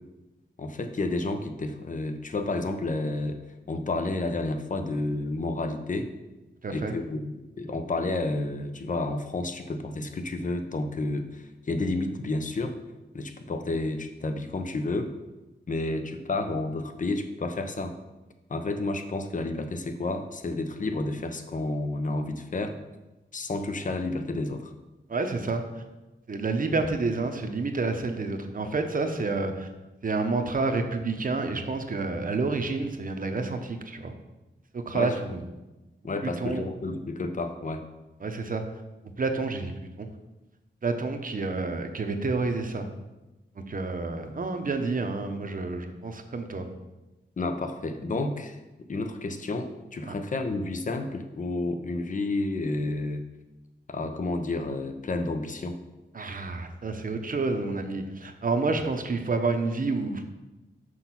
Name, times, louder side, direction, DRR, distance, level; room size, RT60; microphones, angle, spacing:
voice 1, 0.6-3.4 3.7-6.1 6.7-12.8 13.1-15.1 15.7-17.9 18.5-22.8 23.3-24.7 34.9-35.2 36.0-37.8 47.4-48.6 48.9-53.2 53.9-55.8, left 2 dB, 45° left, 7 dB, 0.8 m, -30 dB
voice 2, 6.6-6.9 25.1-25.6 26.3-29.7 30.0-34.1 34.7-35.4 36.2-36.6 38.2-38.6 39.2-39.7 40.0-40.1 40.8-42.9 43.7-46.7 50.1-50.2 56.1-60.2, right 3 dB, 45° right, 6 dB, 0.8 m, -29 dB
6.2 x 5.8 x 5.8 m, 1.1 s
wide cardioid pair, 125°, 19 cm